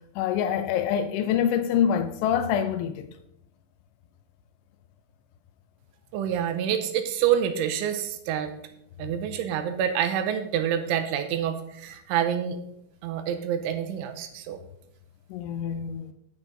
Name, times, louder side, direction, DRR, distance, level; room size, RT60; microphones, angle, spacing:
voice 1, 0.2-3.1 15.3-16.1, left 8 dB, 80° left, 3.0 m, -25 dB
voice 2, 6.1-8.5 9.0-12.6 13.0-14.6, right 9 dB, 80° right, 3.2 m, -27 dB
9.5 x 8.6 x 3.9 m
omnidirectional pair, 5.5 m